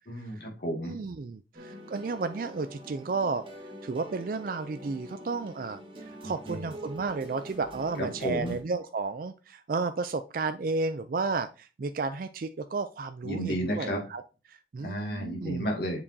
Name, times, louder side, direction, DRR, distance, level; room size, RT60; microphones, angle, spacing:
voice 1, 0.1-1.0 6.2-6.7 8.0-8.6 13.2-14.0 14.8-16.0, equal, 60° left, 0 dB, 2.0 m, -32 dB
voice 2, 0.8-3.4 3.8-5.8 6.2-14.2 14.5-15.7, right 4 dB, 50° right, 9 dB, 0.4 m, -32 dB
sound 1, 1.5-8.6, right 1 dB, 30° right, 1.3 m, -45 dB
7.4 x 4.8 x 2.7 m, 0.31 s
head